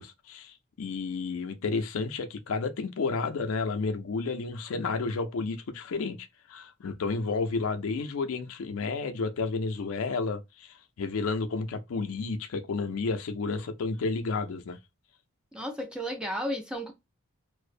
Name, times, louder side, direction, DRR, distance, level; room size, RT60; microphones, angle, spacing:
voice 1, 0.0-14.8, left 4 dB, 70° left, 0.4 m, -31 dB
voice 2, 15.5-16.9, equal, 5° right, 0.3 m, -33 dB
2.5 x 2.0 x 2.4 m
head